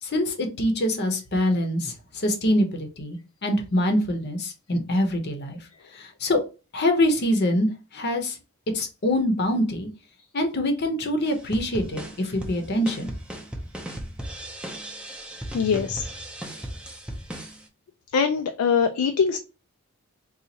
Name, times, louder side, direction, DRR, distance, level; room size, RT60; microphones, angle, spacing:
voice 1, 0.0-5.6 5.9-6.4 6.7-8.4 8.7-9.9 10.3-13.1, left 1 dB, 50° left, 0.7 m, -24 dB
sound 1, 11.2-17.6, right 1 dB, 5° right, 0.5 m, -37 dB
voice 2, 15.5-16.1 18.1-19.4, left 6 dB, 75° left, 0.3 m, -22 dB
3.9 x 2.4 x 2.8 m
head